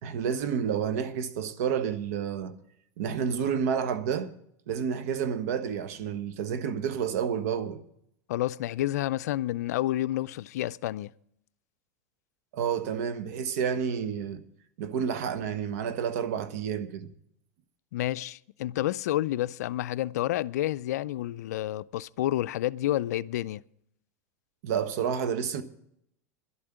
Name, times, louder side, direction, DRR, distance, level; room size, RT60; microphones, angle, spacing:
voice 1, 0.0-2.5 3.0-4.3 4.7-7.8 12.5-14.4 14.8-17.1 24.6-25.6, right 7 dB, 70° right, 1.2 m, -30 dB
voice 2, 8.3-11.1 17.9-23.6, left 14 dB, 80° left, 0.4 m, -29 dB
11.5 x 8.6 x 8.0 m
hypercardioid pair, 110°, 9 cm